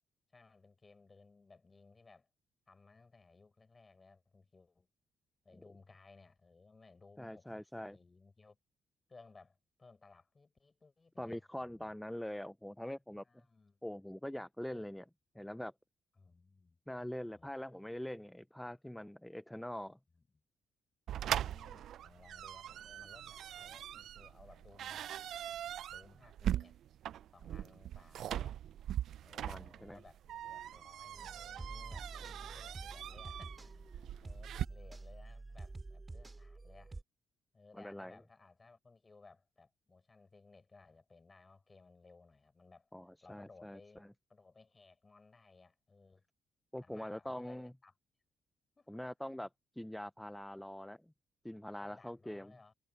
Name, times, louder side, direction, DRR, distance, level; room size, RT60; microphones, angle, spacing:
voice 1, 0.3-2.3 2.7-4.9 5.4-8.6 9.1-12.0 13.2-14.0 16.2-16.8 17.3-17.5 20.1-20.3 21.3-25.0 25.9-26.8 27.3-28.6 29.2-36.9 37.5-42.9 43.2-46.2 46.8-47.9 48.8-48.9 51.8-52.7, left 3 dB, 25° left, 7.2 m, -61 dB
voice 2, 7.2-8.0 11.2-13.2 13.8-15.1 15.3-15.7 16.9-20.0 29.4-30.0 37.8-38.1 42.9-43.8 46.7-47.7 48.9-49.5 49.8-51.1 51.4-52.5, left 1 dB, 5° left, 0.4 m, -43 dB
sound 1, 21.1-34.7, right 11 dB, 70° right, 0.3 m, -41 dB
sound 2, 31.1-37.0, right 2 dB, 20° right, 2.2 m, -48 dB
cardioid pair, 90°, 0 cm